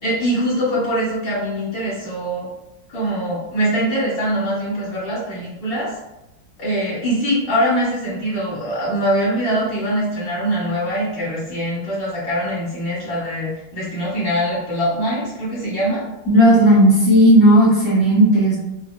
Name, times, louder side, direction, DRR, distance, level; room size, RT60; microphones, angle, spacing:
voice 1, 0.0-2.5 2.9-5.9 6.6-16.0, equal, 60° left, -8 dB, 1.8 m, -23 dB
voice 2, 16.3-18.6, equal, 40° left, -8 dB, 0.9 m, -13 dB
4.6 x 2.0 x 2.2 m, 0.94 s
omnidirectional pair, 2.3 m